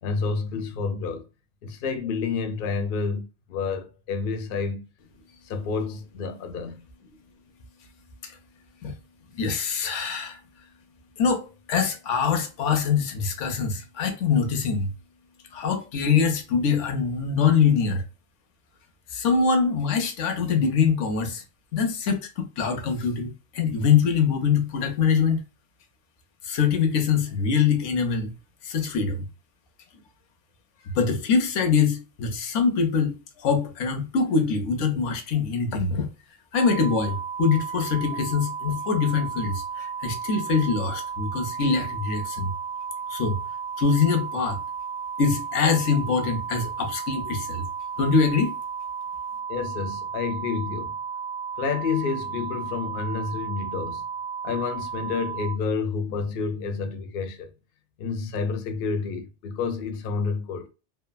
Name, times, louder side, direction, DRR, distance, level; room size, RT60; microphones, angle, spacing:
voice 1, 0.0-1.3 1.6-4.9 5.4-6.8 49.5-50.9 51.6-54.0 54.4-57.5 58.0-60.7, left 5 dB, 60° left, 0.6 m, -29 dB
voice 2, 9.4-10.4 11.2-14.9 15.5-18.0 19.1-21.4 21.7-25.4 26.4-28.3 28.6-29.2 30.9-36.1 36.5-42.5 43.1-43.4 43.8-44.6 45.2-47.7 48.0-48.5, left 5 dB, 85° left, 1.0 m, -24 dB
sound 1, 36.5-55.6, right 6 dB, 70° right, 0.9 m, -34 dB
3.2 x 2.0 x 2.2 m
omnidirectional pair, 1.2 m